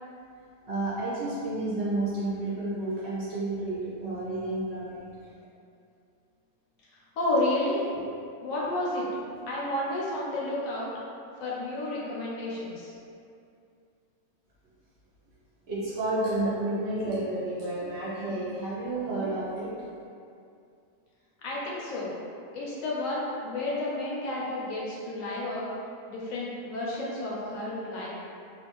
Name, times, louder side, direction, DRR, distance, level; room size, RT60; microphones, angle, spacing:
voice 1, 0.7-5.0 15.7-19.9, right 2 dB, 60° right, -9 dB, 0.8 m, -31 dB
voice 2, 7.2-8.0 8.4-9.0 9.5-10.9 11.4-12.9 21.4-22.2 22.5-25.7 26.1-28.1, left 1 dB, 75° left, -6 dB, 1.0 m, -31 dB
2.5 x 2.2 x 2.9 m, 2.5 s
omnidirectional pair, 1.5 m